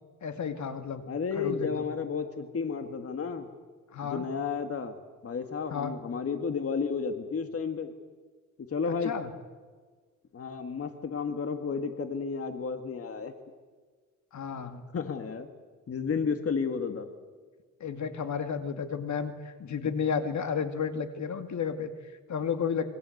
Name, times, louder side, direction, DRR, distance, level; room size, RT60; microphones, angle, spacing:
voice 1, 0.2-1.0 1.3-1.7 3.9-4.2 5.7-6.0 8.9-9.3 14.3-14.8 17.8-22.9, left 6 dB, 60° left, 8 dB, 2.4 m, -32 dB
voice 2, 1.1-3.5 4.1-4.9 5.2-7.9 8.7-9.1 10.3-13.3 14.9-15.5 15.9-17.1, left 5 dB, 45° left, 7 dB, 2.0 m, -32 dB
27.5 x 23.5 x 8.0 m, 1.5 s
cardioid pair, 115°, 32 cm